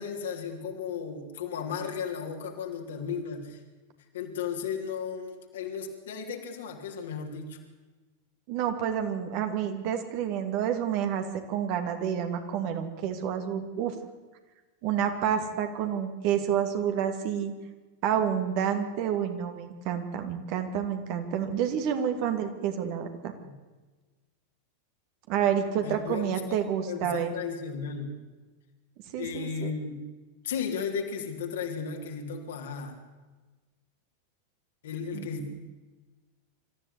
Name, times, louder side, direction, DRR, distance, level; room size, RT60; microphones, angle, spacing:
voice 1, 0.0-3.6 4.1-7.6 23.4-23.5 25.8-26.6 26.9-28.2 29.2-30.1 30.4-33.0 34.8-35.5, left 6 dB, 60° left, 2 dB, 3.4 m, -35 dB
voice 2, 8.5-13.9 14.8-17.5 18.0-23.3 25.3-27.3 29.1-29.7 35.1-35.3, right 8 dB, 45° right, 6 dB, 2.5 m, -29 dB
25.5 x 14.0 x 8.3 m, 1.3 s
figure-of-eight pair, 90°, 0 cm